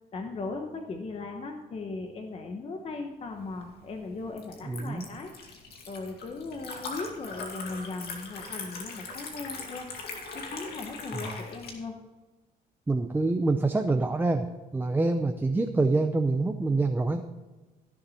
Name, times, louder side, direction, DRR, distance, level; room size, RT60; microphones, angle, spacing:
voice 1, 0.1-5.3 5.9-9.9 10.3-12.0, left 3 dB, 35° left, 4 dB, 1.1 m, -38 dB
Liquid, 3.3-11.7, left 4 dB, 70° left, 2.4 m, -41 dB
voice 2, 4.7-5.1 11.1-11.2 12.9-14.5 14.7-17.2, right 3 dB, 10° right, 6 dB, 0.6 m, -26 dB
15.5 x 7.1 x 4.2 m, 1.2 s
cardioid pair, 110°, 17 cm